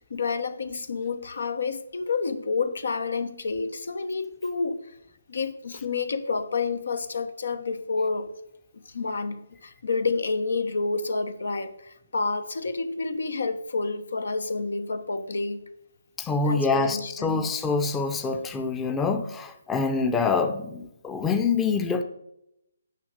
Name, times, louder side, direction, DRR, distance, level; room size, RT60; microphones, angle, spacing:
voice 1, 0.0-4.9 5.3-8.3 8.8-15.6 16.4-17.5, left 4 dB, 75° left, 1.1 m, -29 dB
voice 2, 16.2-22.0, left 4 dB, 10° left, 0.7 m, -26 dB
9.5 x 6.3 x 6.3 m
hypercardioid pair, 150°, 0 cm